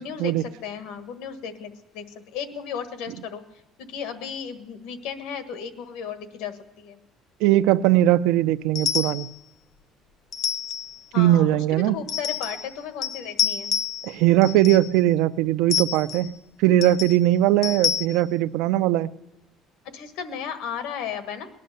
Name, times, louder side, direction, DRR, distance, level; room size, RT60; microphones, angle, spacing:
voice 1, 0.0-2.1 2.3-3.4 3.8-7.0 11.1-13.7 19.8-21.5, left 7 dB, 90° left, 1.4 m, -34 dB
voice 2, 7.4-9.3 11.2-12.0 14.0-16.3 16.6-19.1, right 14 dB, 80° right, 0.5 m, -20 dB
sound 1, 8.8-9.3 10.3-11.0 12.1-12.7 13.0-14.1 14.4-14.9 15.7-16.3 16.8-17.2 17.6-18.1, left 9 dB, 45° left, 0.5 m, -28 dB
19.0 x 11.0 x 6.7 m
cardioid pair, 175°, 0 cm